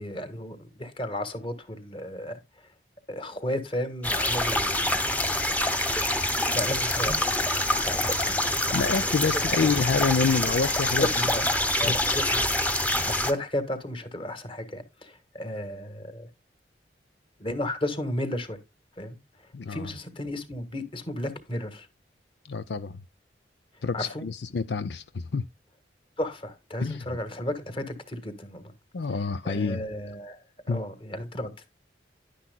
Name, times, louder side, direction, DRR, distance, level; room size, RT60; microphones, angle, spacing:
voice 1, 0.0-2.7 3.1-5.0 6.5-7.3 7.6-8.9 9.2-9.7 11.0-11.5 11.8-16.3 17.4-18.6 19.0-19.2 19.7-21.9 23.9-24.2 26.2-28.7 29.0-31.7, left 1 dB, 30° left, 1.6 m, -34 dB
sound 1, 4.0-13.3, left 1 dB, 10° left, 1.0 m, -26 dB
voice 2, 8.7-11.1 11.8-11.9 19.5-19.9 22.5-23.0 23.8-25.4 26.8-27.0 28.9-29.8 30.7-30.8, left 4 dB, 65° left, 0.5 m, -27 dB
11.0 x 10.0 x 2.2 m
head